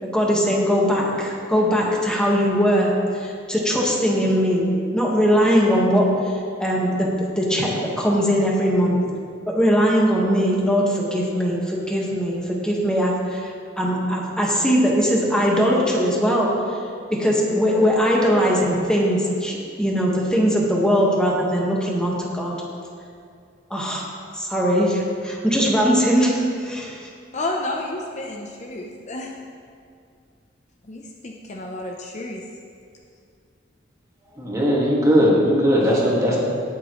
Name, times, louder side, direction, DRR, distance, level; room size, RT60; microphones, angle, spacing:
voice 1, 0.0-2.9 3.2-4.6 4.9-6.3 6.6-9.0 9.5-16.8 17.1-22.5 23.7-24.0 24.3-27.1, equal, 5° left, -4 dB, 1.6 m, -20 dB
voice 2, 27.3-29.3 30.8-32.4, left 2 dB, 40° left, 0 dB, 0.8 m, -31 dB
voice 3, 34.3-36.4, equal, 20° right, -5 dB, 2.0 m, -18 dB
17.5 x 7.1 x 3.2 m, 2.3 s
head